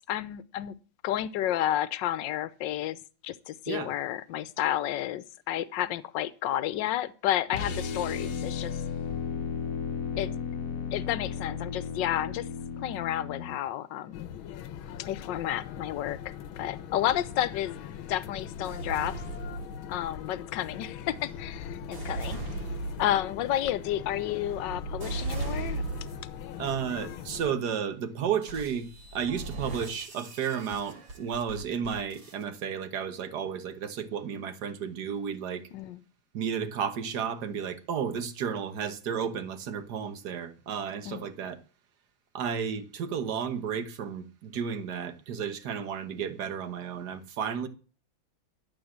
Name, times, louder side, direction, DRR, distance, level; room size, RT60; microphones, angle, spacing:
voice 1, 0.1-0.8 1.0-8.8 10.2-10.3 10.9-12.5 12.8-14.3 15.0-17.8 18.1-19.2 19.9-22.4 23.0-25.8 35.7-36.0 41.1-41.2, left 12 dB, 70° left, 1.4 m, -31 dB
sound 1, 7.5-13.6, left 6 dB, 55° left, 1.2 m, -34 dB
sound 2, 14.1-27.5, left 9 dB, 85° left, 1.6 m, -41 dB
sound 3, 18.6-20.2 20.9-26.4 27.0-27.4 28.4-32.4, right 3 dB, 75° right, 3.7 m, -38 dB
voice 2, 26.6-35.6 36.3-41.6 42.3-47.7, right 7 dB, 60° right, 1.7 m, -33 dB
12.5 x 7.9 x 7.3 m
omnidirectional pair, 2.2 m